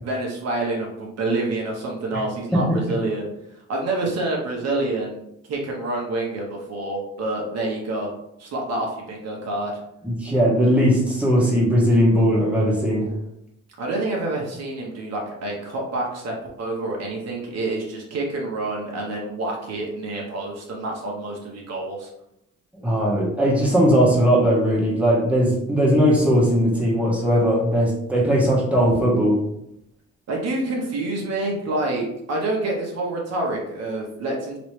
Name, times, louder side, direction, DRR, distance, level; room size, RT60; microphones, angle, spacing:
voice 1, 0.0-3.3 3.5-5.2 5.5-8.1 8.4-9.7 13.8-22.1 30.3-34.6, right 2 dB, 60° right, -1 dB, 0.9 m, -27 dB
voice 2, 2.5-2.9 10.0-13.1 22.8-29.4, equal, 5° right, -5 dB, 1.2 m, -19 dB
3.0 x 3.0 x 3.1 m, 0.79 s
cardioid pair, 90°, 30 cm